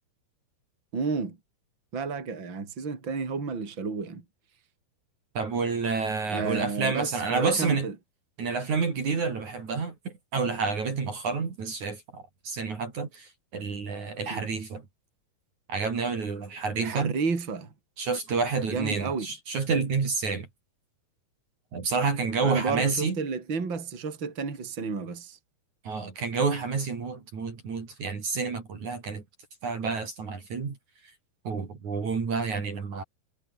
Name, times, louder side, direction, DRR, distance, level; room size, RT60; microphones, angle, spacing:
voice 1, 0.9-1.4 1.9-4.2 6.3-8.0 14.3-14.4 16.8-17.7 18.7-19.3 22.4-25.4, right 4 dB, 30° right, 4.4 m, -31 dB
voice 2, 5.3-7.9 8.4-14.8 15.7-17.1 18.0-20.5 21.7-23.2 25.8-29.2 29.6-30.8 31.4-33.0, right 4 dB, 45° right, 4.9 m, -29 dB
omnidirectional pair, 4.7 m